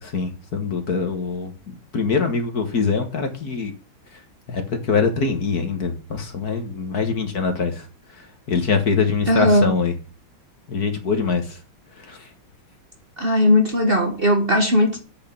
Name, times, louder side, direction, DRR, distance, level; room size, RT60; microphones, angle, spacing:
voice 1, 0.0-3.7 4.5-7.9 8.2-9.9 10.7-11.6 12.0-12.3, left 5 dB, 50° left, 2.0 m, -24 dB
voice 2, 9.3-9.7 13.2-15.0, left 1 dB, 30° right, 1.4 m, -18 dB
8.3 x 6.6 x 7.1 m
omnidirectional pair, 2.2 m